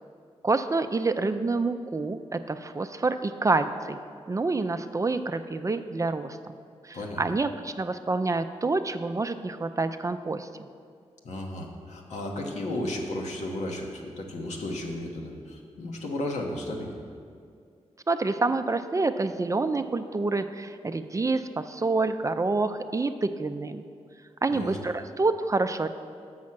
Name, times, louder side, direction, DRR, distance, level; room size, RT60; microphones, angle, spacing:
voice 1, 0.4-4.0 4.3-6.5 6.8-10.5 18.1-23.8 24.4-25.9, right 3 dB, 25° right, 9 dB, 0.4 m, -27 dB
voice 2, 11.2-17.0 24.5-24.8, left 1 dB, 80° left, 1 dB, 1.1 m, -34 dB
6.3 x 6.2 x 5.9 m, 2.3 s
cardioid pair, 50°, 12 cm